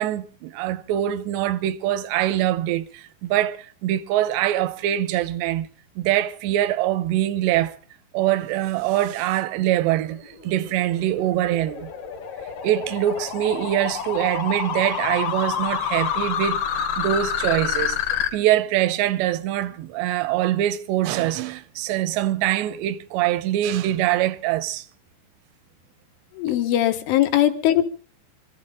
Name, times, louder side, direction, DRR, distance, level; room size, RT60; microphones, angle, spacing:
voice 1, 0.0-5.7 6.0-7.8 8.1-11.9 12.6-16.6 17.0-18.0 18.3-24.8, right 13 dB, 75° right, 2.8 m, -23 dB
sound 1, 10.2-18.3, left 8 dB, 50° left, 2.6 m, -28 dB
voice 2, 26.4-27.8, left 12 dB, 75° left, 3.9 m, -20 dB
25.5 x 14.5 x 3.7 m
omnidirectional pair, 5.7 m